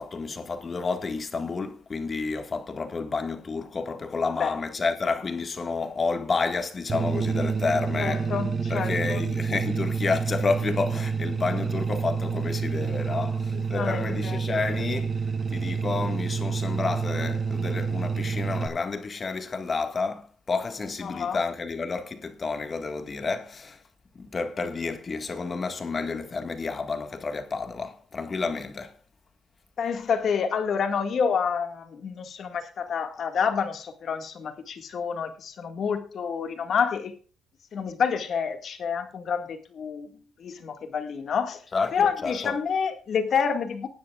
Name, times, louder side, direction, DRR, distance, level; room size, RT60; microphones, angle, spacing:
voice 1, 0.0-8.3 8.7-15.2 15.5-23.8 24.2-28.9 41.7-42.6, left 4 dB, 35° left, 1.7 m, -30 dB
sound 1, 6.9-18.7, right 5 dB, 35° right, 1.1 m, -28 dB
voice 2, 8.0-9.2 13.5-14.4 21.0-21.4 29.8-37.1 37.7-40.1 40.4-41.6 41.9-43.9, left 6 dB, 60° left, 1.9 m, -28 dB
20.0 x 10.0 x 2.4 m
cardioid pair, 90°, 0 cm